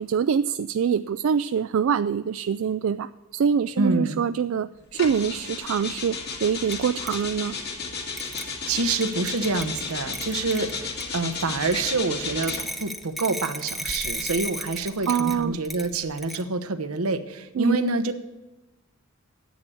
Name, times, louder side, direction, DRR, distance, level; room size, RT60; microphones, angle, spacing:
voice 1, 0.0-7.6 15.1-15.6 17.6-17.8, right 7 dB, 65° right, 12 dB, 0.3 m, -25 dB
voice 2, 3.8-4.2 8.7-18.2, right 3 dB, 80° right, 9 dB, 1.0 m, -27 dB
sound 1, 4.9-12.8 13.7-16.2, left 4 dB, 50° left, 2.0 m, -34 dB
sound 2, 6.7-6.8 7.1-7.2 8.2-8.5 9.0-11.1 11.7-11.8 12.4-15.9 16.2-16.4, right 1 dB, ahead, 0.6 m, -34 dB
10.5 x 8.3 x 7.0 m, 1.1 s
head